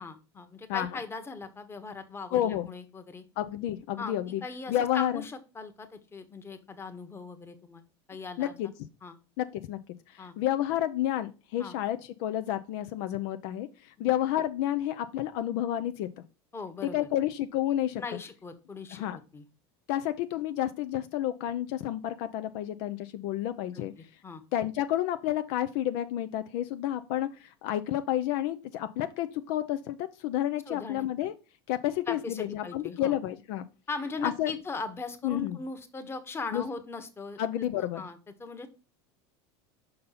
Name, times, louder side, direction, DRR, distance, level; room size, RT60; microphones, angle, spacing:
voice 1, 0.0-3.2 4.0-7.8 8.1-8.5 9.0-9.2 10.2-10.3 11.6-11.7 14.0-14.1 16.5-17.0 17.9-19.0 19.3-19.4 23.7-23.8 24.2-24.4 30.7-31.1 32.1-33.1 33.9-37.4 37.8-38.7, left 4 dB, 20° left, 8 dB, 1.1 m, -39 dB
voice 2, 0.7-1.0 2.3-2.7 3.4-4.4 4.7-5.2 8.4-8.7 9.4-9.8 10.1-16.1 16.8-18.2 18.9-19.2 19.9-23.9 24.5-31.3 31.7-33.7 34.0-34.5 35.2-35.6 36.5-36.7 37.4-38.0, left 12 dB, 65° left, 10 dB, 0.5 m, -30 dB
5.5 x 5.3 x 4.0 m, 0.32 s
supercardioid pair, 105°, 14 cm